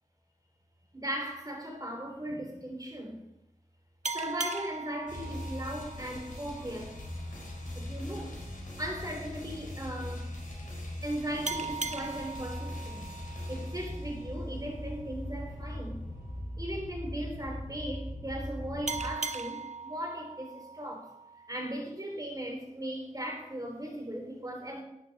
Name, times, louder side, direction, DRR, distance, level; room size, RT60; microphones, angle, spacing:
voice 1, 0.9-3.2 4.1-6.9 7.7-10.3 11.0-13.1 13.5-16.0 16.6-21.1 21.5-24.8, right 1 dB, 25° right, 3.2 m, -38 dB
sound 1, 4.0-7.3 11.5-14.7 18.9-21.8, right 4 dB, 55° right, 0.7 m, -40 dB
sound 2, 5.1-19.1, left 1 dB, 70° left, 4.0 m, -40 dB
11.5 x 9.1 x 4.1 m
wide cardioid pair, 55°, 14 cm